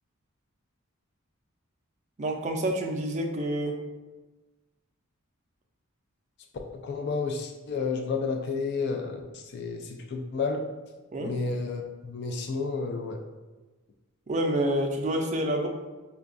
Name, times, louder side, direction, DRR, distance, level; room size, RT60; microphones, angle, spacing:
voice 1, 2.2-3.8 11.1-11.3 14.3-15.7, right 1 dB, 30° right, 2 dB, 0.4 m, -28 dB
voice 2, 6.7-9.2 9.5-10.6 11.2-13.2, left 4 dB, 50° left, 3 dB, 0.3 m, -31 dB
4.9 x 2.2 x 2.5 m, 1.2 s
head